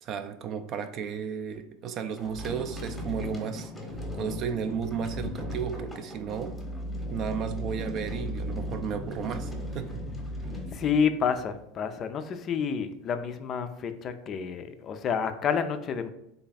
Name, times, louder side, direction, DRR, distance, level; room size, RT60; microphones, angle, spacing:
voice 1, 0.0-3.7 4.2-6.6 7.1-10.2, right 7 dB, 45° right, 9 dB, 0.3 m, -34 dB
sound 1, 2.2-11.6, left 1 dB, 10° left, 0.8 m, -37 dB
voice 2, 10.7-16.1, left 6 dB, 40° left, 9 dB, 0.3 m, -29 dB
3.3 x 2.3 x 4.0 m, 0.79 s
supercardioid pair, 115°, 0 cm